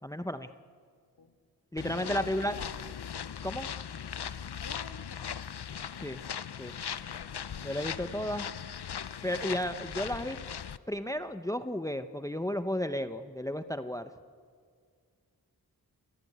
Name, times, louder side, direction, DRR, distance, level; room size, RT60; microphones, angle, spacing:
voice 1, 0.0-0.5 1.7-2.6 3.4-3.7 6.0-6.2 6.6-6.7 7.6-8.5 9.2-10.4 10.9-14.1, equal, 10° left, 10 dB, 0.9 m, -33 dB
sound 1, 1.8-10.8, left 8 dB, 85° left, 0.8 m, -39 dB
voice 2, 2.0-2.7 4.6-5.4 8.2-8.5, left 4 dB, 65° left, 7 dB, 2.3 m, -47 dB
27.5 x 22.5 x 9.4 m, 2.1 s
wide cardioid pair, 55°, 38 cm